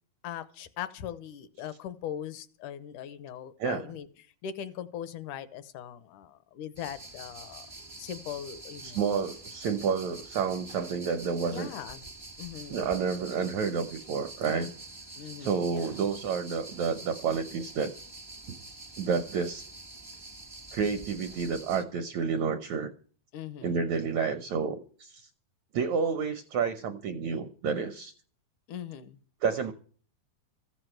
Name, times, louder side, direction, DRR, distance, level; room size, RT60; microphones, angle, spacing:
voice 1, 0.2-4.1 4.4-7.7 8.0-9.0 11.4-12.0 12.4-12.9 15.2-15.8 23.3-23.8 28.7-29.2, left 9 dB, 75° left, 13 dB, 2.0 m, -40 dB
sound 1, 6.7-21.8, right 2 dB, 40° right, 0.3 m, -46 dB
voice 2, 8.8-11.7 12.7-14.7 15.4-17.9 18.5-18.6 19.0-19.7 20.7-22.9 23.6-25.3 25.7-28.1 29.4-29.7, right 5 dB, 75° right, 8 dB, 1.6 m, -30 dB
14.5 x 7.9 x 7.7 m, 0.43 s
omnidirectional pair, 4.3 m